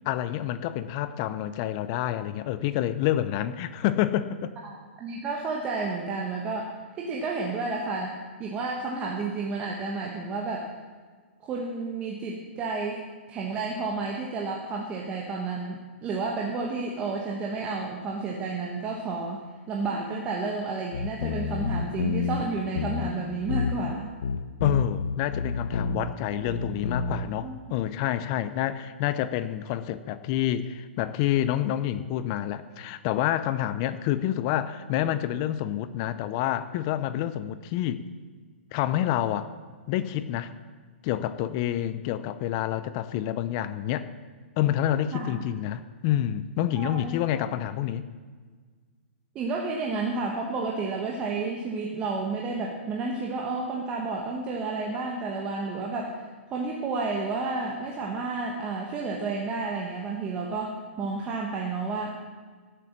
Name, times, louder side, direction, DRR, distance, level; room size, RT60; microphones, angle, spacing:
voice 1, 0.1-4.5 24.6-38.0 38.7-39.5 39.9-40.5 41.0-44.1 44.6-48.1, left 12 dB, 25° left, 14 dB, 0.5 m, -28 dB
voice 2, 4.6-10.7 11.4-13.0 13.3-24.1 26.3-26.5 27.4-27.6 45.1-45.4 46.8-47.5 49.3-56.2 56.5-62.3, right 3 dB, 15° right, -1 dB, 1.1 m, -31 dB
sound 1, 20.9-22.4 22.7-23.1 23.5-23.9 24.2-26.1 26.5-27.2, left 5 dB, 75° left, 1.2 m, -28 dB
16.5 x 7.8 x 7.2 m, 1.5 s
hypercardioid pair, 165°, 7 cm